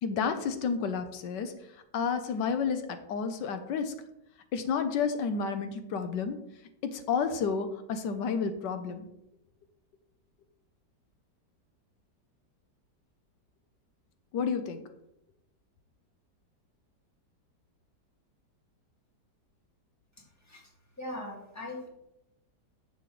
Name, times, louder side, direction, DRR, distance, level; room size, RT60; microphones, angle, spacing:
voice 1, 0.0-1.5 1.9-3.9 4.5-6.4 6.8-9.1 14.3-14.8, left 6 dB, 85° left, 8 dB, 1.4 m, -30 dB
voice 2, 21.0-21.9, left 1 dB, 10° left, -2 dB, 1.9 m, -39 dB
10.5 x 7.1 x 3.1 m, 0.84 s
omnidirectional pair, 1.9 m